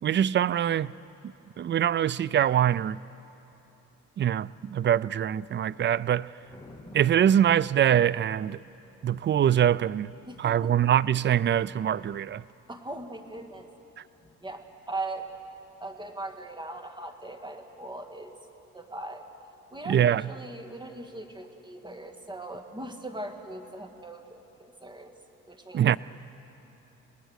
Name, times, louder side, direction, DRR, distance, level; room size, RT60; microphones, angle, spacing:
voice 1, 0.0-0.9 1.6-3.0 4.2-6.3 6.9-8.6 9.0-10.1 10.4-12.4 19.9-20.2 25.7-26.0, right 10 dB, 40° right, 0.4 m, -23 dB
Thunder, 4.5-16.1, left 1 dB, 10° left, 2.4 m, -56 dB
voice 2, 10.3-10.7 12.7-13.7 14.4-15.3 15.8-18.3 18.7-19.2 19.7-25.1 25.5-25.9, right 2 dB, 15° right, 2.0 m, -39 dB
27.5 x 19.5 x 6.5 m
cardioid pair, 90°, 30 cm